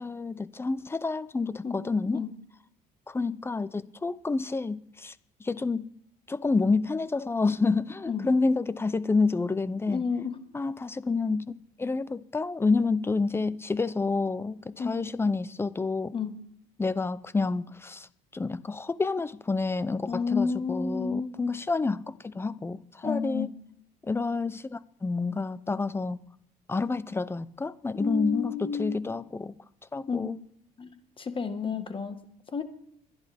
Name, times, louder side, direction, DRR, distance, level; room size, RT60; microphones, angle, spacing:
voice 1, 0.0-2.2 3.1-5.1 5.4-5.9 6.3-10.0 10.5-16.1 16.8-18.1 18.3-23.5 24.0-26.2 26.7-28.5 28.8-29.6 29.9-30.4 31.6-31.8, left 3 dB, 15° left, 0.6 m, -29 dB
voice 2, 9.9-10.4 14.8-14.9 16.1-16.3 20.1-21.3 23.0-23.5 28.0-29.0 30.1-30.3 30.8-32.2 32.5-32.6, left 5 dB, 30° left, 1.5 m, -31 dB
23.0 x 10.5 x 3.5 m
cardioid pair, 110°, 17 cm